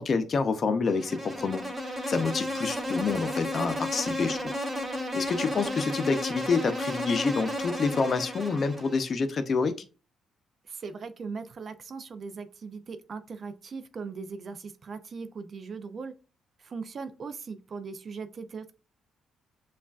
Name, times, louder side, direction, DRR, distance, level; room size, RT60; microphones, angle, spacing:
voice 1, 0.0-4.5 5.1-9.7, left 4 dB, 45° left, 8 dB, 0.6 m, -28 dB
Insect, 0.9-9.1, left 1 dB, 30° right, 1.9 m, -33 dB
voice 2, 10.6-16.1 16.6-18.7, right 5 dB, 45° right, 10 dB, 0.5 m, -39 dB
7.0 x 2.4 x 2.4 m, 0.33 s
cardioid pair, 90°, 0 cm